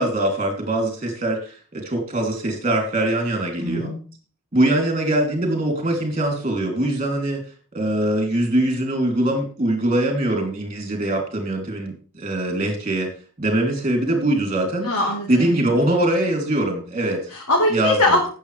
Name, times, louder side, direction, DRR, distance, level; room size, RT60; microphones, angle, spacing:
voice 1, 0.0-3.9 4.5-7.4 7.7-13.1 13.4-14.9 15.3-17.2 17.7-18.0, right 1 dB, 30° right, 2 dB, 2.9 m, -22 dB
voice 2, 3.6-4.0 14.8-15.7 17.3-18.3, left 1 dB, 85° left, -3 dB, 3.7 m, -21 dB
17.0 x 7.2 x 3.3 m, 0.38 s
head